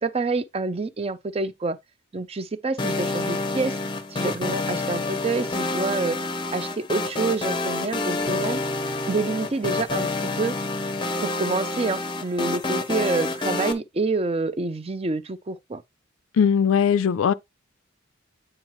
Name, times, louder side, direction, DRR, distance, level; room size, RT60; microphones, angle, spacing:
voice 1, 0.0-1.8 2.1-3.8 4.1-6.2 6.5-8.6 9.1-10.5 11.2-15.8, right 3 dB, 30° right, 0.5 m, -27 dB
sound 1, 2.8-13.7, left 2 dB, 25° left, 0.6 m, -28 dB
voice 2, 16.4-17.3, left 7 dB, 80° left, 0.4 m, -19 dB
8.9 x 4.6 x 3.0 m
head